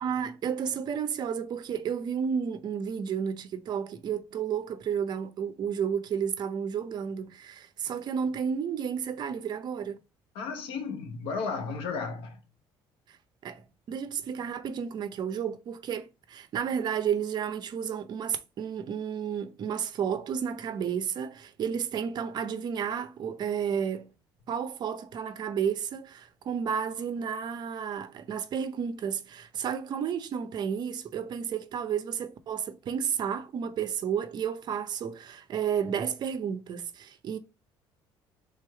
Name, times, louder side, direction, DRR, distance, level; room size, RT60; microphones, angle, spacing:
voice 1, 0.0-10.0 13.4-24.1 24.5-37.4, right 7 dB, 50° right, 0.6 m, -32 dB
voice 2, 10.3-12.5, left 5 dB, 85° left, 0.9 m, -34 dB
3.5 x 3.3 x 4.5 m
cardioid pair, 120°, 9 cm